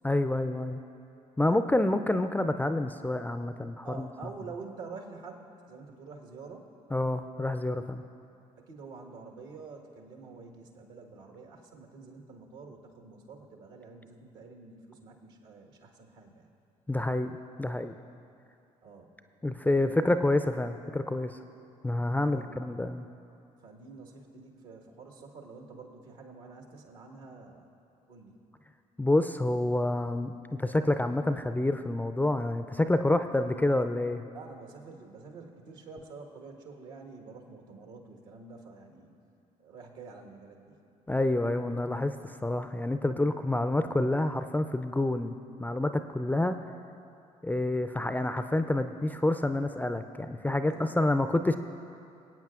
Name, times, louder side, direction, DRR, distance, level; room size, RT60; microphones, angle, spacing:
voice 1, 0.0-0.8 1.4-4.1 6.9-8.0 16.9-17.9 19.4-21.4 21.8-23.1 29.0-34.2 41.1-46.6 47.4-51.6, left 2 dB, 10° left, 9 dB, 0.4 m, -28 dB
voice 2, 3.8-6.7 8.6-16.5 18.8-19.1 19.7-20.2 22.2-22.5 23.6-27.7 28.1-28.4 34.3-39.1 39.6-40.8 50.6-51.2, right 4 dB, 70° right, 2 dB, 1.5 m, -47 dB
25.5 x 8.7 x 2.4 m, 2.6 s
hypercardioid pair, 50°, 18 cm